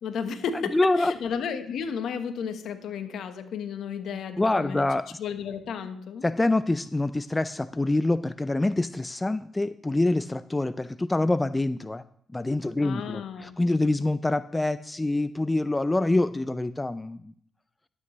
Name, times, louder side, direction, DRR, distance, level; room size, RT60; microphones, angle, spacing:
voice 1, 0.0-4.8 5.2-6.2 12.8-13.5, left 6 dB, 70° left, 8 dB, 1.1 m, -33 dB
voice 2, 0.7-1.1 4.4-5.1 6.2-12.0 12.3-17.3, left 2 dB, 20° left, 14 dB, 0.4 m, -25 dB
12.0 x 8.6 x 3.1 m, 0.64 s
supercardioid pair, 60°, 0 cm